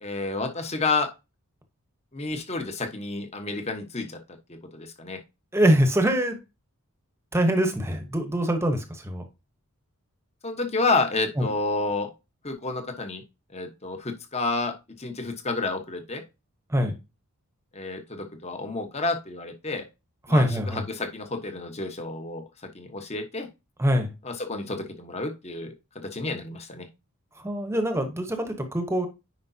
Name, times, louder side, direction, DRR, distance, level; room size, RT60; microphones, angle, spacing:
voice 1, 0.0-1.1 2.1-4.2 4.5-5.2 10.4-12.1 12.4-13.2 13.5-16.2 17.7-19.8 20.3-22.4 22.7-23.5 24.2-26.9, left 3 dB, 30° left, 6 dB, 1.0 m, -30 dB
voice 2, 5.5-6.4 7.3-9.2 11.4-11.5 16.7-16.9 20.3-20.8 23.8-24.1 27.4-29.1, equal, 10° right, 6 dB, 1.0 m, -23 dB
9.5 x 5.1 x 2.7 m, 0.26 s
head